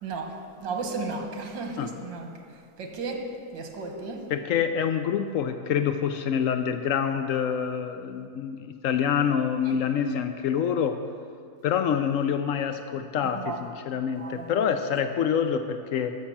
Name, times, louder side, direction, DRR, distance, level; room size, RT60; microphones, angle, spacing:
voice 1, 0.0-2.3 2.8-4.3 9.6-9.8 13.2-13.6 14.2-14.5, right 3 dB, 80° right, 3 dB, 2.0 m, -34 dB
voice 2, 4.3-11.0 11.6-16.2, left 8 dB, 90° left, 8 dB, 0.7 m, -26 dB
13.5 x 6.4 x 7.2 m, 2.3 s
omnidirectional pair, 2.0 m